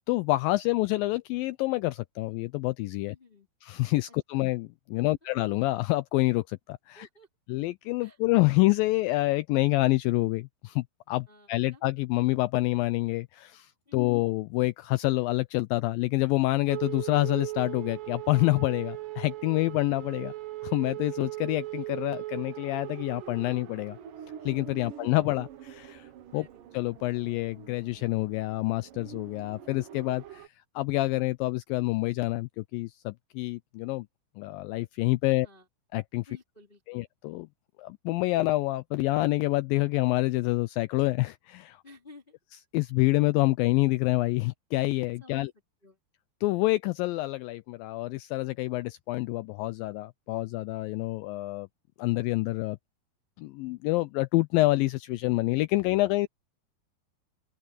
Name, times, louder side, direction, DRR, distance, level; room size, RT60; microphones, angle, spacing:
voice 1, 0.1-3.2 3.6-7.1 7.5-20.3 20.6-24.0 24.5-26.5 26.7-30.5 30.8-34.1 34.4-35.5 35.9-36.3 36.9-37.5 37.8-41.8 42.7-45.5 46.4-51.7 52.0-52.8 53.4-56.3, left 20 dB, 90° left, 2.0 m, -27 dB
voice 2, 3.0-3.5 4.3-4.4 5.0-5.1 6.9-7.3 8.0-8.2 11.3-11.8 13.9-14.2 24.8-25.1 26.3-26.6 35.4-35.7 36.3-37.0 41.8-42.4 45.2-45.4 45.8-46.0, left 2 dB, 15° left, 2.7 m, -54 dB
sound 1, 16.7-30.5, right 15 dB, 65° right, 2.7 m, -40 dB
open air
omnidirectional pair, 4.6 m